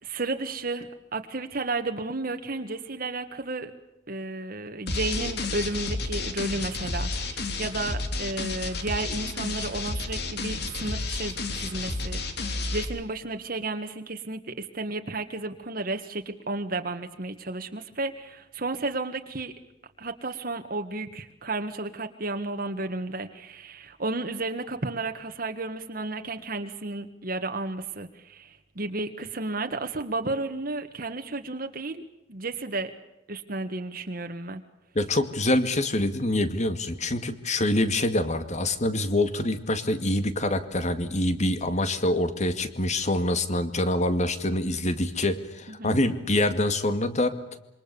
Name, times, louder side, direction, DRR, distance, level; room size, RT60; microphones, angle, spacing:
voice 1, 0.0-3.7 4.1-19.5 20.0-32.9 33.3-34.6 45.8-45.9, right 2 dB, 50° right, 6 dB, 1.6 m, -33 dB
sound 1, 4.9-12.9, left 3 dB, 60° left, 3.4 m, -31 dB
voice 2, 34.9-47.4, left 1 dB, 40° left, 10 dB, 2.2 m, -25 dB
27.0 x 25.0 x 7.0 m, 0.93 s
head